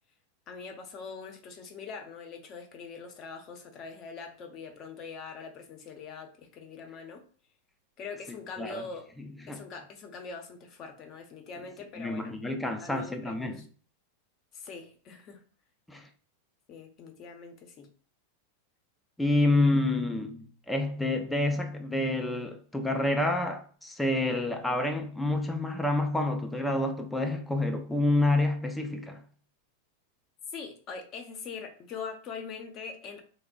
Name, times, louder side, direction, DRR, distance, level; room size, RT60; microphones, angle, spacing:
voice 1, 0.5-7.2 8.0-9.1 9.5-12.4 12.8-13.6 14.5-15.4 16.7-17.9 19.7-19.8 30.5-33.2, left 5 dB, 35° left, 0.7 m, -43 dB
voice 2, 9.2-9.6 12.0-13.7 15.9-16.1 19.2-29.2, left 2 dB, 5° left, 0.4 m, -28 dB
3.4 x 2.0 x 3.7 m
supercardioid pair, 135°, 0 cm